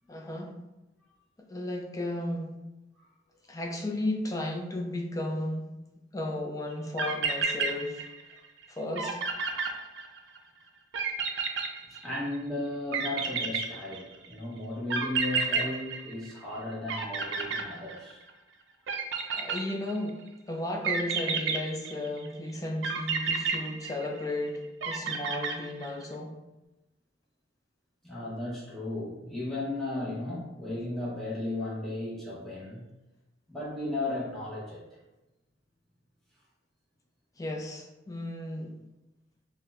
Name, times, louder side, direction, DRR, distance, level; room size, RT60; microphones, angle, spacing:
voice 1, 0.1-0.6 1.5-2.6 3.5-5.7 6.1-8.0 8.7-9.2 19.3-20.2 20.5-26.3 37.4-38.7, left 1 dB, 20° left, 2 dB, 0.4 m, -34 dB
sound 1, 6.7-6.8 7.0-8.3 8.6-8.7 9.0-10.4 10.9-12.4 12.9-14.3 14.9-16.6 16.9-18.3 18.9-20.1 20.8-22.3 22.8-24.4 24.8-26.0, right 5 dB, 85° right, 0.4 m, -31 dB
voice 2, 11.9-18.2 19.2-19.4 28.0-32.8 33.5-34.8, left 2 dB, ahead, -7 dB, 0.9 m, -35 dB
4.3 x 2.1 x 2.4 m, 1.0 s
head